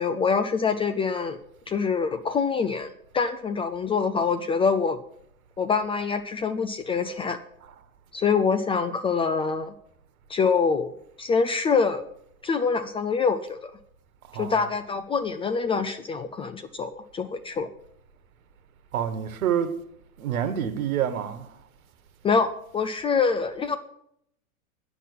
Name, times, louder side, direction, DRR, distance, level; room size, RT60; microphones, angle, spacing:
voice 1, 0.0-1.4 1.7-5.0 5.6-7.4 8.1-9.7 10.3-10.9 11.2-12.0 12.4-13.7 14.4-17.7 22.2-23.8, left 5 dB, 15° left, 0.4 m, -25 dB
voice 2, 14.3-14.7 18.9-19.8 20.2-21.5, right 9 dB, 75° right, 1.4 m, -28 dB
10.5 x 6.0 x 8.4 m
hypercardioid pair, 110°, 43 cm